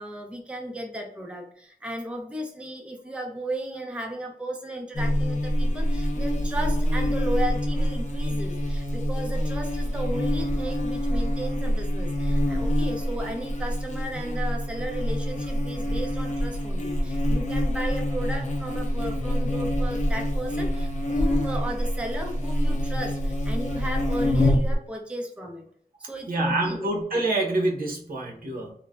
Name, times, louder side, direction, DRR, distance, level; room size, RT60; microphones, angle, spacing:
voice 1, 0.0-25.7 26.1-26.9, right 1 dB, 5° right, 1 dB, 0.5 m, -35 dB
Buzz, 4.9-24.8, equal, 50° left, 0.6 m, -26 dB
voice 2, 26.3-28.7, right 2 dB, 65° right, -1 dB, 0.8 m, -26 dB
3.1 x 2.1 x 2.4 m, 0.63 s
wide cardioid pair, 85°, 16 cm